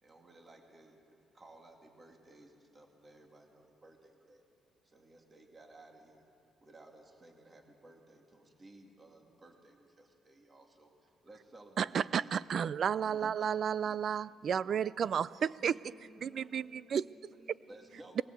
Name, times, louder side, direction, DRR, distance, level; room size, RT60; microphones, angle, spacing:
voice 1, 0.0-1.0 1.3-4.4 4.8-6.2 6.6-12.5 13.0-14.0 15.2-15.5 16.4-16.5 17.7-18.2, right 2 dB, 25° right, 2.4 m, -57 dB
voice 2, 11.8-15.7 16.2-17.0, right 8 dB, 50° right, 0.4 m, -32 dB
voice 3, 15.6-18.2, equal, 10° left, 5.6 m, -59 dB
21.0 x 17.0 x 8.0 m
cardioid pair, 120°, 0 cm